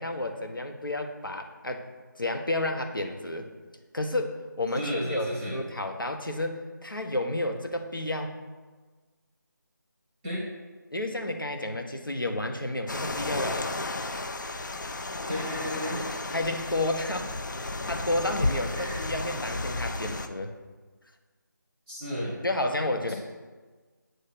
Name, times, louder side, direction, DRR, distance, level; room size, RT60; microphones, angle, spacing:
voice 1, 0.0-1.9 2.2-3.5 3.9-8.4 10.9-13.8 16.3-20.5 22.4-23.1, left 1 dB, 85° left, 4 dB, 0.8 m, -31 dB
voice 2, 4.8-5.6 10.2-10.4 15.3-16.0 18.7-19.0 21.9-22.4 23.1-23.2, equal, 10° right, -5 dB, 0.7 m, -33 dB
sound 1, 12.9-20.3, left 2 dB, 65° left, 0.5 m, -33 dB
7.8 x 2.7 x 6.0 m, 1.4 s
figure-of-eight pair, 160°, 11 cm